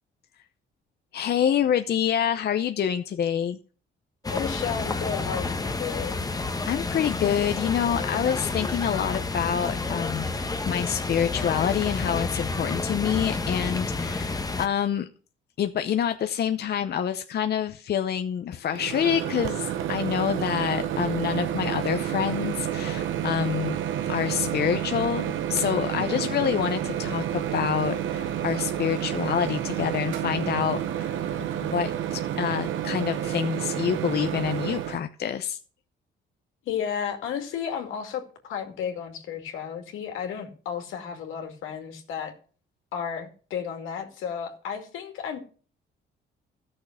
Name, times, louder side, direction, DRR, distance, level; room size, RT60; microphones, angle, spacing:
voice 1, 1.1-3.6 6.7-15.1 15.6-23.8 24.0-35.6, left 9 dB, 55° left, 8 dB, 0.7 m, -27 dB
sound 1, 4.2-14.7, left 3 dB, 20° left, 1.0 m, -30 dB
voice 2, 4.3-6.3 24.8-24.9 26.0-26.3 36.6-42.3 42.9-45.4, left 8 dB, 85° left, 4 dB, 2.3 m, -33 dB
Microwave oven, 18.7-35.0, right 10 dB, 85° right, 1.0 m, -29 dB
13.5 x 6.5 x 5.8 m, 0.40 s
cardioid pair, 90°, 20 cm